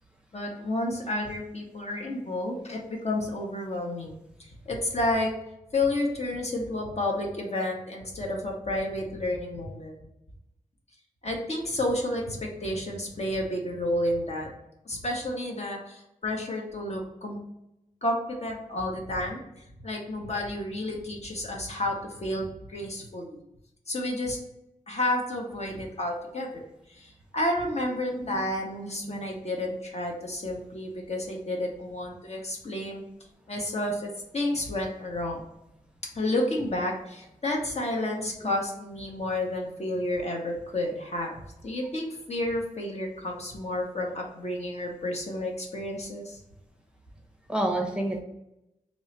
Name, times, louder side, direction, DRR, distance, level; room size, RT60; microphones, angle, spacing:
voice 1, 0.3-5.3 5.7-10.0 11.2-14.5 14.8-17.4 18.0-23.4 23.9-24.4 24.9-26.6 26.9-33.0 33.5-35.4 36.1-41.4 41.6-46.4, left 1 dB, 50° left, 0 dB, 0.9 m, -31 dB
voice 2, 28.1-28.4 29.0-29.2 38.4-38.5 47.5-48.2, right 1 dB, 5° right, 1 dB, 0.6 m, -29 dB
3.0 x 2.3 x 4.3 m, 0.88 s
wide cardioid pair, 75°, 14 cm